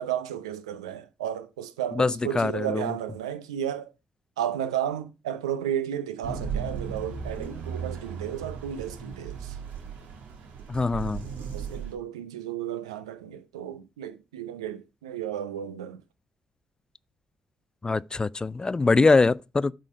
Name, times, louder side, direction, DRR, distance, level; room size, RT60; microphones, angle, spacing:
voice 1, 0.0-3.9 4.4-9.6 11.4-16.0, right 10 dB, 85° right, 0.5 m, -33 dB
voice 2, 2.0-2.9 10.7-11.2 17.8-19.7, left 3 dB, 25° left, 0.3 m, -23 dB
sound 1, 6.2-11.9, right 6 dB, 70° right, 1.4 m, -36 dB
8.2 x 3.8 x 5.4 m
hypercardioid pair, 40°, 3 cm